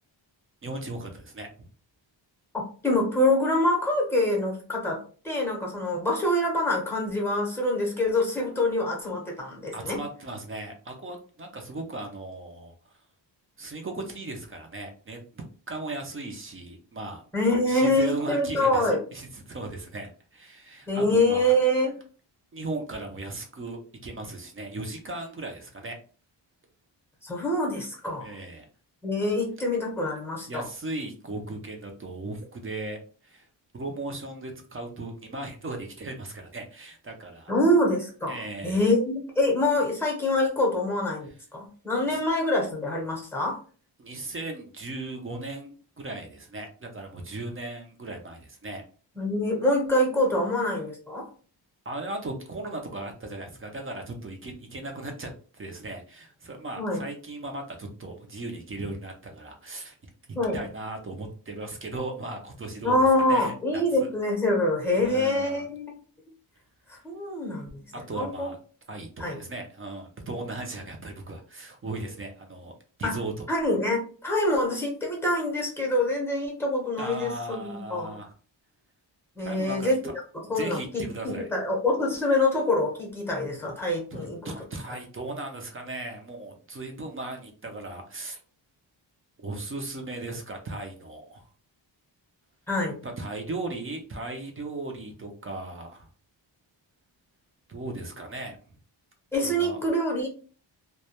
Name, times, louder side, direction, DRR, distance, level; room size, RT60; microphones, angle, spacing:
voice 1, 0.6-1.7 9.7-12.7 13.6-17.2 17.6-21.5 22.5-26.0 28.2-28.7 30.5-33.5 33.7-37.5 38.3-38.9 42.1-42.2 44.0-48.8 51.9-60.0 60.3-64.1 64.9-65.7 67.9-68.6 68.9-72.7 73.0-73.5 77.0-78.3 79.4-80.1 80.5-81.5 84.1-88.4 89.4-91.4 93.0-96.1 97.7-98.6 99.4-99.8, right 2 dB, 30° right, 3 dB, 0.4 m, -37 dB
voice 2, 2.8-10.0 17.3-19.0 20.9-21.9 27.2-28.3 29.0-30.6 37.5-43.6 49.2-51.3 56.8-57.0 60.3-60.6 62.8-66.0 66.9-67.8 68.1-68.5 69.2-69.4 73.0-73.2 73.5-78.2 79.4-80.0 80.5-84.5 92.7-93.0 99.3-100.3, left 1 dB, 5° left, 0 dB, 0.7 m, -25 dB
2.2 x 2.1 x 2.8 m, 0.40 s
wide cardioid pair, 155°, 45 cm